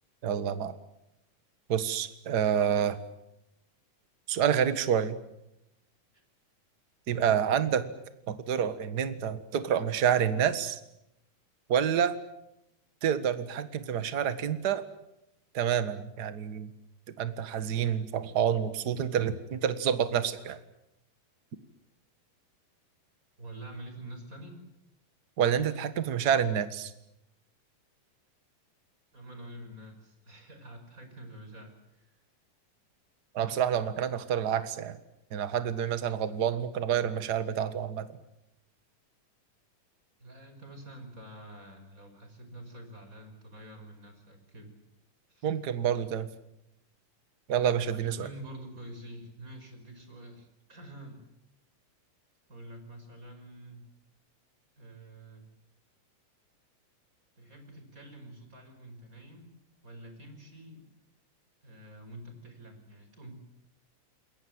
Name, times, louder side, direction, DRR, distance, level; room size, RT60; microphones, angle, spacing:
voice 1, 0.2-0.7 1.7-3.0 4.3-5.2 7.1-7.9 8.3-10.8 11.7-12.1 13.0-14.8 15.5-16.7 17.2-20.6 25.4-26.9 33.3-35.0 35.3-38.1 45.4-46.3 47.5-48.3, right 8 dB, 40° right, 12 dB, 1.5 m, -28 dB
voice 2, 23.4-24.6 29.1-32.2 40.2-44.7 45.3-45.5 47.9-51.3 52.5-53.9 54.8-55.4 57.4-59.6 59.8-60.9 61.6-63.3, right 1 dB, 25° right, 6 dB, 5.6 m, -47 dB
28.5 x 21.5 x 8.0 m, 0.85 s
omnidirectional pair, 3.7 m